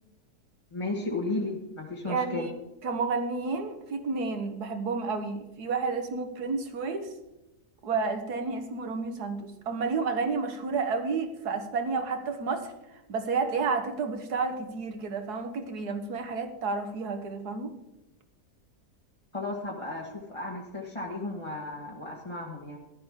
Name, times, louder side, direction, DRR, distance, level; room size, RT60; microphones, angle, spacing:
voice 1, 0.7-2.5 19.3-22.8, left 2 dB, 20° left, -3 dB, 1.4 m, -34 dB
voice 2, 2.0-2.5 2.8-7.1 7.8-12.7 13.1-17.7, right 4 dB, 70° right, 7 dB, 1.8 m, -31 dB
14.5 x 12.0 x 3.7 m, 0.97 s
omnidirectional pair, 1.8 m